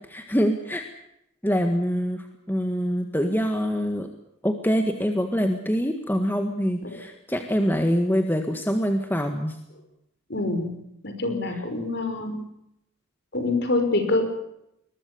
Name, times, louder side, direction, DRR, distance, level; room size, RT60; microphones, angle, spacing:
voice 1, 0.1-0.8 1.4-4.1 4.4-9.6, equal, 10° left, 5 dB, 1.7 m, -25 dB
voice 2, 10.3-10.8 11.0-12.4 13.3-14.2, left 2 dB, 50° left, 7 dB, 5.5 m, -26 dB
22.0 x 21.0 x 6.9 m, 0.79 s
head